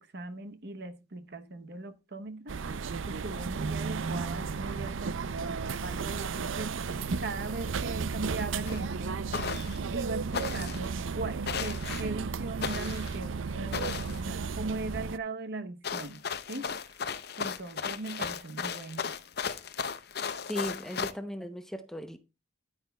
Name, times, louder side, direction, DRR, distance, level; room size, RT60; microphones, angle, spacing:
voice 1, 0.0-9.3 9.9-17.0 17.4-19.1, right 2 dB, 55° right, 1.0 m, -39 dB
sound 1, 2.5-15.2, right 5 dB, 75° right, 0.5 m, -34 dB
sound 2, 8.7-8.8 9.3-9.8 10.3-10.9 11.5-12.1 12.6-13.2 13.7-14.2 15.8-21.1, left 6 dB, 50° left, 0.7 m, -35 dB
voice 2, 20.5-22.2, equal, ahead, 0.7 m, -37 dB
10.5 x 9.5 x 2.3 m
head